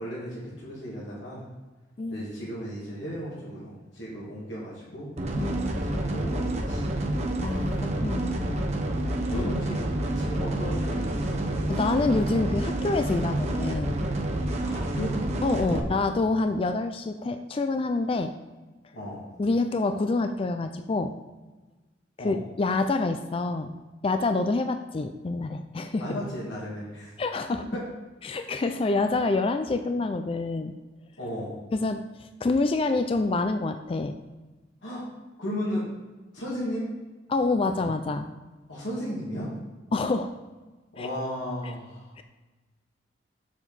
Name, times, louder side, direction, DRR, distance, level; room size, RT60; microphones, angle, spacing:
voice 1, 0.0-1.5 2.1-5.5 5.8-6.9 8.4-8.7 9.3-9.8 10.1-11.4 13.2-13.5 14.6-15.1 15.6-15.9 18.9-19.2 22.2-22.4 26.0-27.1 27.7-27.8 31.2-31.6 34.8-35.1 35.4-35.8 36.3-37.0 38.7-39.5 40.9-42.1, equal, 80° left, -7 dB, 2.3 m, -35 dB
sound 1, 5.2-15.8, right 1 dB, 35° right, 0.9 m, -28 dB
voice 2, 5.4-5.8 7.4-8.5 9.3-9.5 11.7-14.0 15.4-18.3 19.4-21.1 22.2-23.7 24.0-26.1 27.2-27.6 28.2-30.7 31.7-34.1 37.3-38.3 39.9-40.3 41.0-41.1 42.2-42.3, left 3 dB, 30° left, 7 dB, 0.3 m, -27 dB
7.3 x 6.9 x 4.1 m, 1.2 s
head